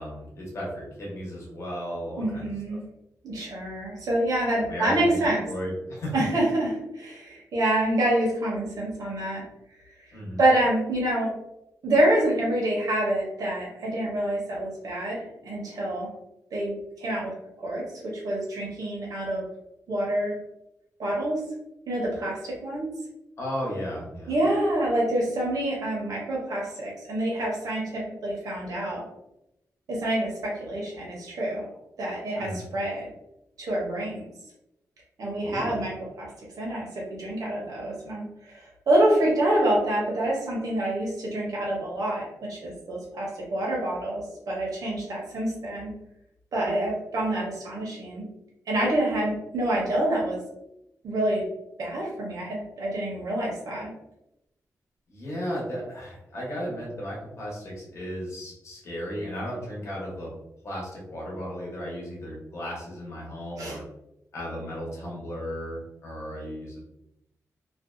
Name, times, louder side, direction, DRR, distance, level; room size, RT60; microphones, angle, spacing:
voice 1, 0.0-2.8 4.7-5.2 5.5-6.1 10.1-10.4 23.4-24.4 32.3-32.6 35.4-35.8 55.1-60.3 60.6-63.8 64.3-66.8, equal, 50° left, -4 dB, 0.9 m, -35 dB
voice 2, 2.2-2.8 3.2-5.4 6.1-9.4 10.1-11.3 11.8-16.1 16.5-17.8 18.2-19.4 19.9-20.3 21.0-21.4 21.9-22.9 24.3-29.0 29.9-31.6 32.0-33.1 33.6-34.3 35.2-35.9 36.2-36.3 36.6-45.9 46.5-48.2 48.7-50.4 51.0-51.4 51.8-53.9 63.6-63.8, right 1 dB, 75° right, -4 dB, 0.8 m, -27 dB
2.5 x 2.2 x 2.5 m, 0.85 s
wide cardioid pair, 145°, 6 cm